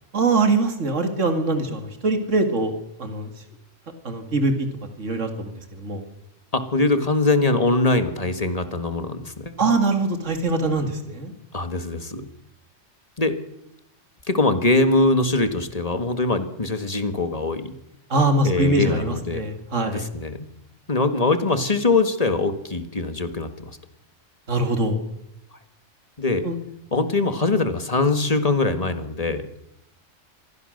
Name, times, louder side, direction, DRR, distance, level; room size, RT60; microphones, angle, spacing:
voice 1, 0.1-3.3 4.0-4.7 5.0-6.0 9.6-11.3 18.1-20.0 24.5-25.0 26.4-26.6, right 2 dB, 75° right, 6 dB, 2.8 m, -23 dB
voice 2, 6.5-9.5 11.5-12.3 13.2-13.3 14.3-17.7 18.4-19.5 19.9-20.5 20.9-23.7 26.2-26.5 26.9-29.5, left 2 dB, 30° left, 8 dB, 1.8 m, -22 dB
26.5 x 22.5 x 6.6 m, 0.84 s
omnidirectional pair, 1.3 m